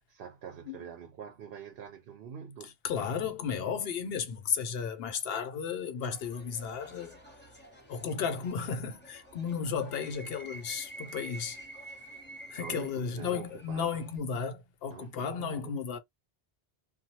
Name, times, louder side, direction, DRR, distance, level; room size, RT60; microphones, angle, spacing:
voice 1, 0.1-2.7 12.6-14.1 14.9-15.7, right 7 dB, 70° right, 0.8 m, -45 dB
voice 2, 2.6-7.2 7.9-11.6 12.5-16.0, left 6 dB, 70° left, 0.8 m, -34 dB
sound 1, 6.0-14.2, right 1 dB, 10° left, 0.8 m, -49 dB
3.0 x 2.2 x 2.8 m
omnidirectional pair, 1.0 m